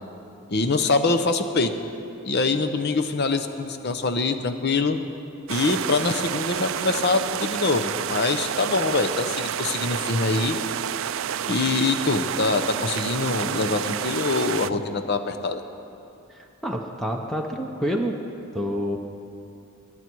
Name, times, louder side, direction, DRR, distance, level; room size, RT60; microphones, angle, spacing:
voice 1, 0.5-1.7 2.2-5.0 5.5-10.6 11.5-15.6, left 3 dB, 50° left, 8 dB, 0.7 m, -24 dB
sound 1, 5.5-14.7, right 9 dB, 60° right, 0.4 m, -29 dB
voice 2, 16.3-18.2 18.5-19.0, equal, ahead, 1 dB, 0.7 m, -28 dB
23.0 x 9.8 x 4.6 m, 2.7 s
head